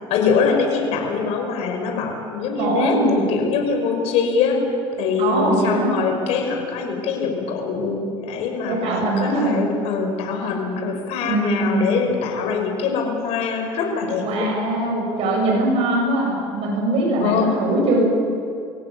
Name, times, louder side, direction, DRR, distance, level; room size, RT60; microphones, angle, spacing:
voice 1, 0.1-4.6 5.0-14.5 17.2-17.5, left 5 dB, 65° left, 3 dB, 5.4 m, -23 dB
voice 2, 2.6-3.2 5.2-5.9 8.7-9.6 11.3-11.9 14.2-18.0, right 2 dB, 60° right, -1 dB, 7.4 m, -21 dB
24.5 x 17.5 x 8.5 m, 2.4 s
supercardioid pair, 115°, 12 cm